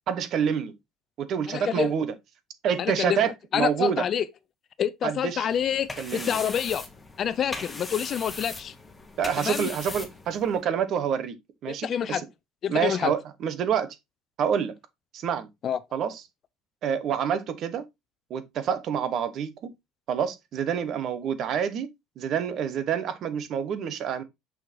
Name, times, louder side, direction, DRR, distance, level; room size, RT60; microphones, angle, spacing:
voice 1, 0.1-0.7 1.2-2.1 2.6-4.0 5.0-5.5 6.0-6.4 9.2-11.3 11.6-12.2 12.7-13.9 14.4-14.7 15.1-15.5 15.9-16.2 16.8-17.9 18.3-19.5 20.1-21.9 22.2-24.2, right 7 dB, 50° right, 1.3 m, -27 dB
voice 2, 1.5-1.9 2.8-3.2 3.5-4.3 4.8-6.8 7.2-8.7 9.4-9.7 11.7-12.2 12.6-13.1 15.6-15.8, left 9 dB, 40° left, 0.6 m, -27 dB
sound 1, 5.5-10.6, left 3 dB, 15° left, 1.7 m, -39 dB
6.5 x 5.9 x 2.9 m
cardioid pair, 130°, 0 cm